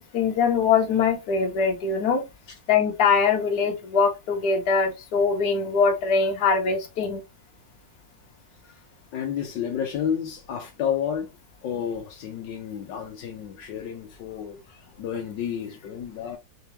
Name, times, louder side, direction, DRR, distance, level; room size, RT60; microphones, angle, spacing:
voice 1, 0.1-2.2 2.7-7.2, left 5 dB, 60° left, 1.5 m, -22 dB
voice 2, 9.1-11.3 11.6-16.4, left 8 dB, 80° left, 1.4 m, -31 dB
4.6 x 3.4 x 2.8 m
omnidirectional pair, 2.0 m